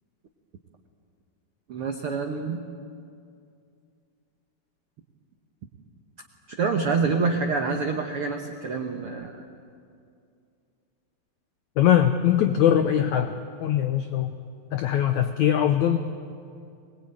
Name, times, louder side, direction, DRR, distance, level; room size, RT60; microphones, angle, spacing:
voice 1, 1.7-2.6 6.6-9.3, right 4 dB, 85° right, 3 dB, 1.2 m, -26 dB
voice 2, 11.8-14.3 14.7-16.0, left 10 dB, 90° left, 7 dB, 1.6 m, -21 dB
23.0 x 21.0 x 8.9 m, 2.4 s
omnidirectional pair, 4.4 m